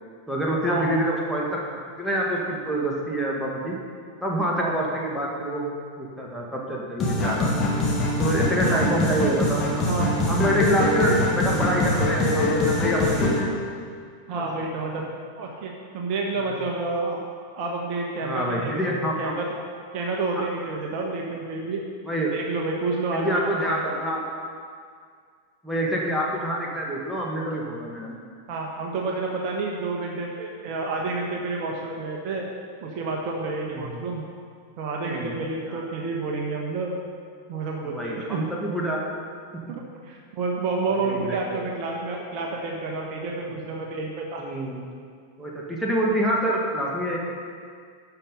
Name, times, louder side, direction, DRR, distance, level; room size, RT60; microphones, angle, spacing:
voice 1, 0.3-1.5 2.0-3.8 4.2-5.6 6.0-7.6 8.2-9.9 10.3-13.7 14.4-14.5 16.4-16.5 18.2-19.4 20.3-20.4 22.0-22.4 23.1-24.2 25.6-28.2 33.7-34.0 35.0-35.8 37.7-39.0 39.7-39.8 41.0-41.7 44.4-44.8 45.4-47.2, right 1 dB, ahead, -4 dB, 1.9 m, -27 dB
sound 1, 7.0-13.4, left 2 dB, 25° left, 2.0 m, -23 dB
voice 2, 9.8-10.2 14.3-15.0 15.3-17.2 17.5-19.5 19.9-21.8 22.3-23.9 28.5-32.4 32.8-34.2 34.8-37.0 37.5-38.4 39.7-44.4, right 3 dB, 40° right, -1 dB, 1.3 m, -29 dB
11.5 x 6.0 x 5.4 m, 2.1 s
figure-of-eight pair, 90°, 0 cm